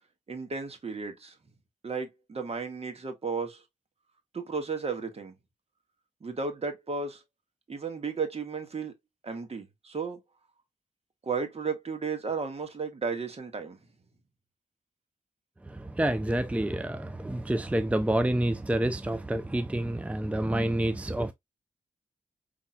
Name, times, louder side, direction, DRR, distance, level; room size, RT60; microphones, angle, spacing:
voice 1, 0.3-1.4 1.8-3.6 4.3-5.3 6.2-7.2 7.7-8.9 9.2-10.2 11.2-13.8, right 5 dB, 50° right, 1.6 m, -34 dB
voice 2, 15.6-21.3, right 1 dB, 10° right, 0.5 m, -28 dB
5.6 x 3.5 x 2.3 m
cardioid pair, 55°, 14 cm